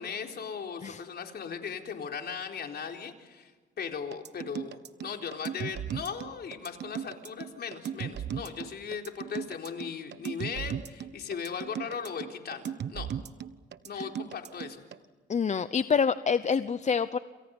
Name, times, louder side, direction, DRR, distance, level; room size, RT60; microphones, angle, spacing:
voice 1, 0.0-3.5 3.8-13.1 13.8-14.8, left 6 dB, 55° left, 3 dB, 4.1 m, -38 dB
sound 1, 4.1-15.0, right 9 dB, 60° right, 1.2 m, -37 dB
voice 2, 15.3-17.2, left 6 dB, 35° left, 13 dB, 0.8 m, -27 dB
30.0 x 28.0 x 5.4 m, 1.4 s
cardioid pair, 90°, 20 cm